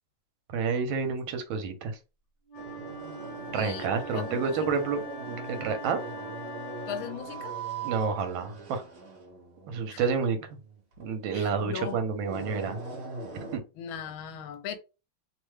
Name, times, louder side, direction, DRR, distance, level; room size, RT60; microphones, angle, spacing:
voice 1, 0.5-2.0 3.5-6.0 7.8-8.8 9.7-10.5 11.0-12.8 13.5-13.6, right 5 dB, 75° right, 1.4 m, -29 dB
Wind instrument woodwind instrument, 2.5-7.3, right 1 dB, 55° left, 1.2 m, -42 dB
sound 1, 2.5-13.6, right 4 dB, 60° right, 1.3 m, -41 dB
voice 2, 3.5-4.9 6.9-7.6 9.9-10.0 11.3-12.0 13.8-14.8, left 8 dB, 80° left, 1.3 m, -38 dB
3.3 x 2.1 x 3.1 m
omnidirectional pair, 2.2 m